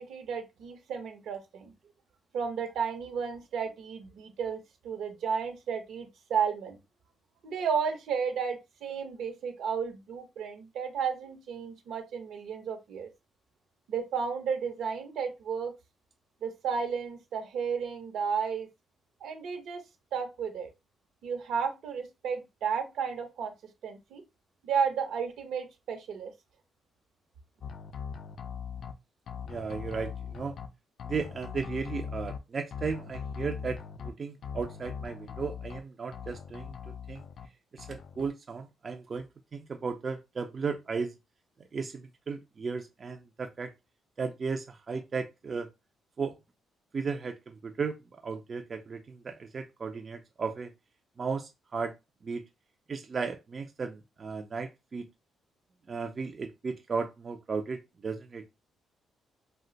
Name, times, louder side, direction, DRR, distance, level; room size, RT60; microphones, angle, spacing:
voice 1, 0.0-1.7 2.3-6.8 7.4-13.1 13.9-15.7 16.4-18.7 19.2-19.8 20.1-20.7 21.2-23.5 23.8-24.2 24.6-26.3, right 6 dB, 75° right, 0.8 m, -33 dB
sound 1, 27.6-28.9 29.3-30.7 31.0-32.4 32.7-34.1 34.4-35.8 36.1-37.5 37.8-38.3, left 6 dB, 60° left, 0.4 m, -40 dB
voice 2, 29.5-30.5 31.0-37.2 37.7-41.1 41.7-43.7 44.2-45.7 46.2-46.3 46.9-50.7 51.2-51.9 52.2-52.4 52.9-55.1 55.9-58.4, right 5 dB, 40° right, 0.4 m, -35 dB
2.4 x 2.1 x 3.8 m
cardioid pair, 90°, 0 cm